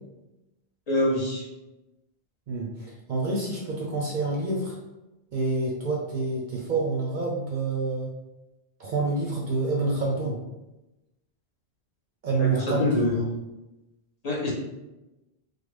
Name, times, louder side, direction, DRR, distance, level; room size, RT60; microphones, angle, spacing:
voice 1, 0.9-1.5 12.4-13.2 14.2-14.5, left 2 dB, 45° left, -3 dB, 0.6 m, -25 dB
voice 2, 2.5-4.8 5.3-8.1 8.8-10.4 12.2-13.2, right 3 dB, 55° right, -2 dB, 0.6 m, -27 dB
3.2 x 2.0 x 3.2 m, 0.99 s
omnidirectional pair, 1.1 m